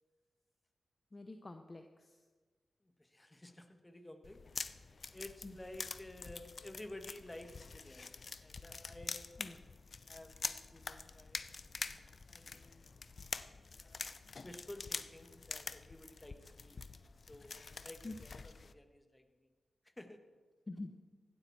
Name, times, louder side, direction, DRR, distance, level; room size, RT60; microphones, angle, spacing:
voice 1, 1.1-2.2 5.4-5.5 9.4-9.6 18.0-18.1 20.7-20.9, left 2 dB, 35° left, 6 dB, 1.0 m, -46 dB
voice 2, 2.8-4.8 5.1-9.4 10.1-11.4 11.7-11.9 12.3-12.9 13.8-14.1 14.4-16.9 17.3-19.5 20.0-20.2, left 1 dB, 20° left, 7 dB, 1.7 m, -53 dB
sound 1, 4.2-18.7, left 4 dB, 55° left, 0.6 m, -46 dB
16.0 x 12.0 x 4.3 m, 1.4 s
cardioid pair, 45°, 0 cm